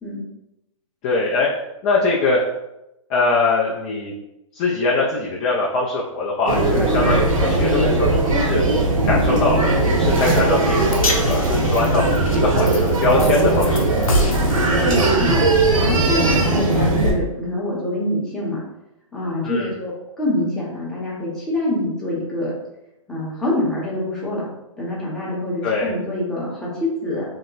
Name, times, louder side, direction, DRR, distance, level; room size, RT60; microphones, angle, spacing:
voice 1, 1.0-1.5 1.8-2.4 3.1-4.1 4.5-8.6 9.0-12.0 12.3-14.4 19.4-19.7 25.6-25.9, left 3 dB, 20° left, -3 dB, 0.4 m, -22 dB
sound 1, 6.5-17.1, right 2 dB, 75° right, 1.0 m, -18 dB
sound 2, 10.9-17.3, left 1 dB, 90° left, 0.7 m, -28 dB
voice 2, 14.8-15.4 15.7-18.6 19.1-22.5 23.1-24.4 24.8-27.2, left 1 dB, 5° left, -7 dB, 0.8 m, -25 dB
2.9 x 2.1 x 3.8 m, 0.90 s
hypercardioid pair, 150°, 17 cm